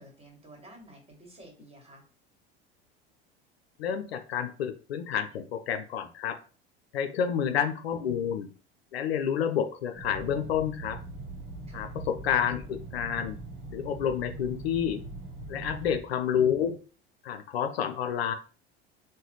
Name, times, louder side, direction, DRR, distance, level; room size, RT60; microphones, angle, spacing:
voice 1, 0.0-2.0 7.1-7.5 11.7-11.9 15.6-16.3, right 1 dB, 20° right, 0 dB, 1.5 m, -51 dB
voice 2, 3.8-6.4 6.9-8.5 8.9-11.0 11.7-13.4 13.7-15.0 15.5-16.8 17.2-18.3, left 8 dB, 80° left, 8 dB, 0.5 m, -29 dB
sound 1, 9.9-16.0, right 2 dB, 40° right, 1.1 m, -41 dB
3.9 x 2.1 x 3.0 m, 0.38 s
figure-of-eight pair, 75°, 31 cm